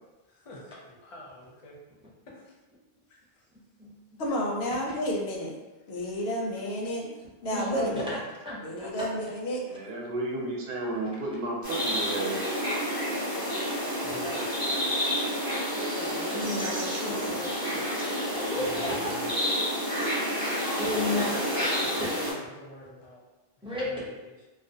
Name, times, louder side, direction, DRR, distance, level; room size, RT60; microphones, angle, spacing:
voice 1, 0.3-1.8 2.2-2.6 3.1-3.4 7.9-8.1 13.9-14.9 18.5-19.3 20.6-23.2 23.7-24.3, left 1 dB, 45° left, -3 dB, 0.5 m, -46 dB
voice 2, 4.2-5.6 5.9-7.1 7.4-8.1 8.6-9.6 13.4-13.8, left 1 dB, 80° left, -2 dB, 0.8 m, -31 dB
voice 3, 7.4-8.0 8.4-8.9 16.0-17.9 18.3-18.8 20.8-21.3 23.6-24.0, left 2 dB, 5° right, -9 dB, 0.5 m, -33 dB
voice 4, 9.7-12.5 17.9-18.0, right 2 dB, 75° right, -2 dB, 0.8 m, -33 dB
sound 1, 11.6-22.3, equal, 25° right, 0.9 m, -29 dB
2.4 x 2.0 x 2.6 m, 1.1 s
omnidirectional pair, 1.0 m